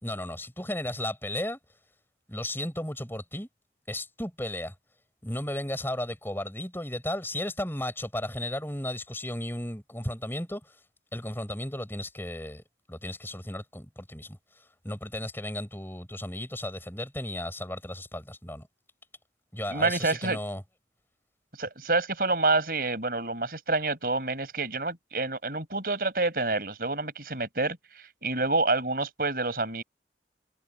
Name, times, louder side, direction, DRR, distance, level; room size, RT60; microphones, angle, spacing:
voice 1, 0.0-1.6 2.3-3.5 3.9-4.7 5.2-10.7 11.1-12.6 12.9-14.4 14.8-18.7 19.5-20.6, left 1 dB, 10° left, 5.4 m, -34 dB
voice 2, 19.7-20.4 21.6-29.8, right 3 dB, 55° right, 5.5 m, -28 dB
head